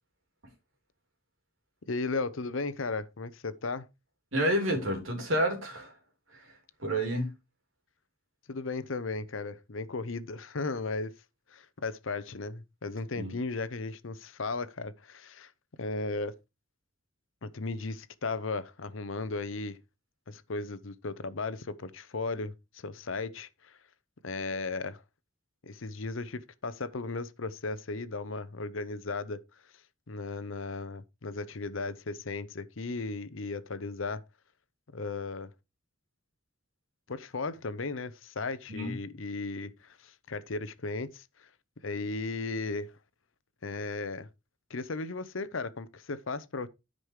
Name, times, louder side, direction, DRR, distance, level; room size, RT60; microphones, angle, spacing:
voice 1, 1.9-3.9 8.5-11.1 11.5-15.5 15.8-16.3 17.4-19.8 20.3-23.8 24.2-25.0 25.6-29.4 30.1-34.2 34.9-35.5 37.1-41.5 41.8-42.9 43.6-44.3 44.7-46.7, left 3 dB, 70° left, 0.8 m, -36 dB
voice 2, 4.3-5.9 6.3-6.5 6.8-7.3 13.1-13.3 38.7-39.0, equal, 75° right, 3.1 m, -29 dB
9.9 x 5.4 x 4.7 m
head